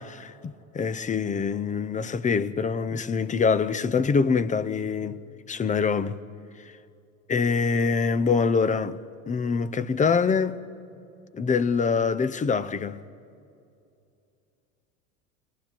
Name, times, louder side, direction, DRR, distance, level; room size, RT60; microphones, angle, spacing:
voice 1, 0.0-5.2 5.5-6.2 7.3-9.0 9.3-10.6 11.3-13.0, left 5 dB, 20° left, 0.7 m, -25 dB
29.5 x 20.5 x 4.5 m
hypercardioid pair, 95°, 41 cm